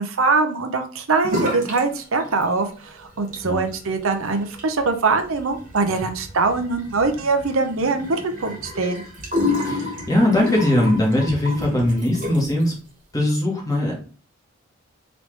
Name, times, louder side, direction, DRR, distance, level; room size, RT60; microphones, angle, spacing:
voice 1, 0.0-9.0, right 3 dB, 70° right, 8 dB, 0.7 m, -22 dB
sound 1, 1.2-1.8 2.1-2.8 3.2-12.6, left 2 dB, 35° right, 1.5 m, -30 dB
voice 2, 9.6-12.7 13.1-13.9, left 1 dB, 15° left, -2 dB, 1.3 m, -20 dB
4.0 x 3.2 x 3.2 m, 0.38 s
head